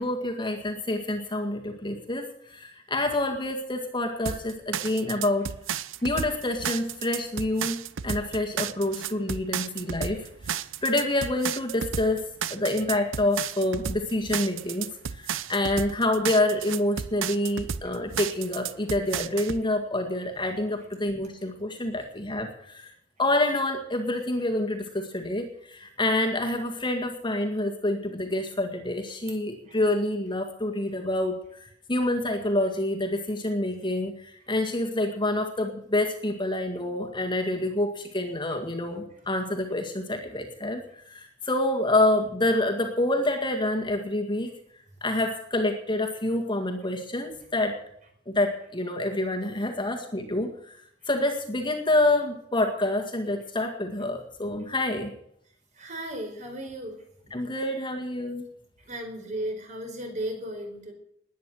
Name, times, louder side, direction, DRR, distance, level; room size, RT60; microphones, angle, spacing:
voice 1, 0.0-5.5 6.0-10.2 10.4-22.9 23.2-44.5 45.0-47.8 48.3-50.8 51.1-55.1 57.3-58.4, left 1 dB, 25° left, 3 dB, 1.9 m, -27 dB
sound 1, 4.3-19.6, right 8 dB, 70° right, 0.7 m, -33 dB
voice 2, 55.7-56.9 58.9-60.9, right 1 dB, 35° right, 3 dB, 4.8 m, -35 dB
20.5 x 9.4 x 6.4 m, 0.70 s
head